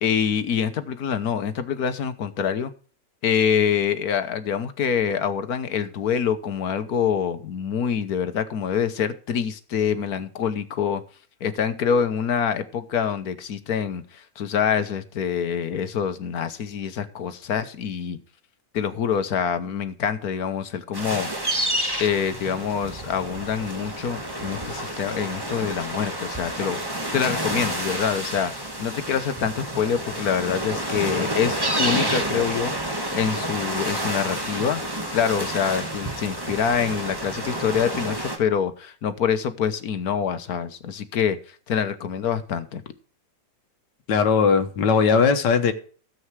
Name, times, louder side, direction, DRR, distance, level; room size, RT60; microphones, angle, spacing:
voice 1, 0.0-2.7 3.2-11.0 11.4-18.2 18.7-21.5 22.0-26.8 27.1-28.5 28.8-34.8 35.1-42.8, left 7 dB, 60° left, 1.5 m, -25 dB
sound 1, 20.9-38.4, right 1 dB, 15° right, 1.9 m, -29 dB
voice 2, 44.1-45.7, left 5 dB, 80° left, 1.7 m, -19 dB
13.0 x 7.9 x 4.7 m
omnidirectional pair, 1.8 m